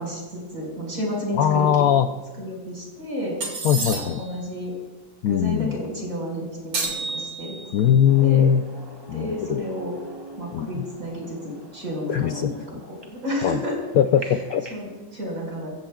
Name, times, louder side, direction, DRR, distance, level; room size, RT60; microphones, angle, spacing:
voice 1, 0.0-1.7 2.4-3.4 3.8-4.7 5.3-7.5 7.8-7.9 8.2-8.4 9.1-9.9 10.4-13.7 14.7-15.7, equal, 40° right, -2 dB, 5.4 m, -31 dB
voice 2, 1.3-2.1 3.6-4.2 5.2-5.8 7.7-8.6 9.1-9.6 10.5-10.9 12.1-12.6 13.4-13.6 14.0-14.7, left 9 dB, 85° left, 8 dB, 0.8 m, -20 dB
sound 1, 3.4-4.4 6.7-7.8, right 3 dB, 70° right, 3.0 m, -30 dB
sound 2, 8.1-14.9, right 1 dB, 15° right, 2.2 m, -45 dB
24.5 x 15.5 x 2.3 m, 1.2 s
omnidirectional pair, 2.1 m